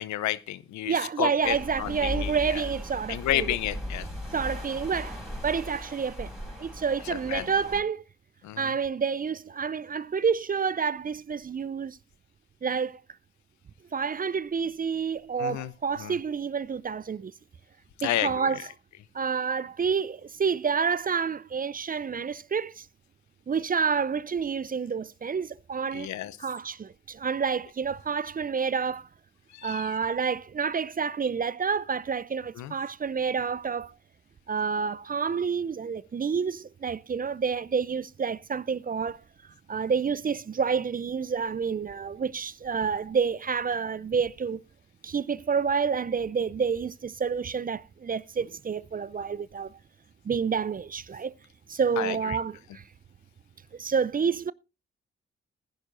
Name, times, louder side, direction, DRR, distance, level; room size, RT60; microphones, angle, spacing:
voice 1, 0.0-2.6 3.1-4.1 7.1-7.5 8.4-8.7 15.4-15.7 16.0-16.2 18.0-18.5 25.9-26.4 29.5-30.0 32.6-32.7 52.0-52.4, left 13 dB, 70° left, 0.8 m, -31 dB
voice 2, 0.9-3.5 4.3-6.3 6.6-8.0 8.6-12.0 12.6-13.0 13.9-17.3 18.0-18.6 19.1-22.9 23.5-26.1 26.4-29.1 29.6-33.9 34.5-39.2 39.7-44.6 45.0-49.7 50.2-51.3 51.7-52.8 53.7-54.5, right 6 dB, 30° right, 0.5 m, -29 dB
sound 1, 1.4-7.8, left 1 dB, ahead, 5.2 m, -38 dB
19.5 x 10.5 x 2.6 m
hypercardioid pair, 40°, 30 cm